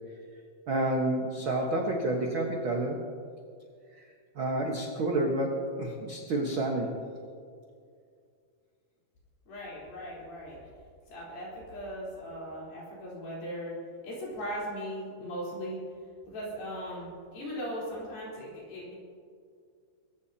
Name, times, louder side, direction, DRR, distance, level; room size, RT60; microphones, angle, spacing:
voice 1, 0.7-3.0 3.9-4.0 4.3-7.0, right 1 dB, 80° right, 0 dB, 1.1 m, -29 dB
voice 2, 9.5-10.6 11.1-13.8 14.0-15.8 16.3-19.0, equal, 65° left, -6 dB, 5.8 m, -38 dB
24.5 x 15.5 x 2.9 m, 2.2 s
omnidirectional pair, 4.5 m